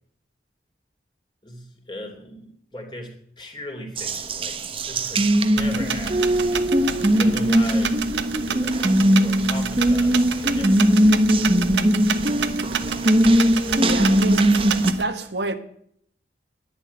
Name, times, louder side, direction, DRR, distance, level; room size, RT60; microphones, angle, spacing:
voice 1, 1.4-4.6 4.9-6.4 7.2-8.1 8.4-11.1, left 1 dB, 25° left, 3.2 m, -38 dB
Water tap faucet, 4.0-14.9, equal, 30° right, 1.0 m, -20 dB
sound 1, 5.6-15.0, right 6 dB, 90° right, 1.1 m, -28 dB
voice 2, 13.8-14.6 15.0-15.5, right 2 dB, 70° right, 1.4 m, -28 dB
11.0 x 10.5 x 9.5 m
head